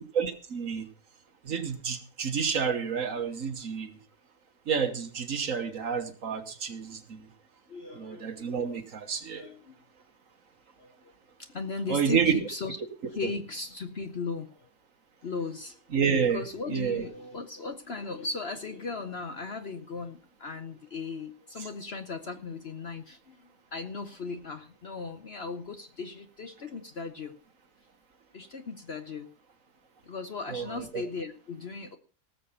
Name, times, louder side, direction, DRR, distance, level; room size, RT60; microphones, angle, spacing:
voice 1, 0.1-0.9 1.4-4.0 4.7-7.3 7.9-9.4 11.9-12.3 15.9-16.4 16.7-17.0 30.5-31.0, right 6 dB, 55° right, 8 dB, 1.6 m, -29 dB
voice 2, 7.7-8.8 9.3-9.7 10.8-11.1 11.4-12.8 13.1-14.7 15.2-15.8 16.3-27.3 28.3-29.3 30.0-32.0, left 4 dB, 45° left, 8 dB, 1.0 m, -37 dB
18.5 x 6.8 x 5.5 m, 0.38 s
omnidirectional pair, 1.7 m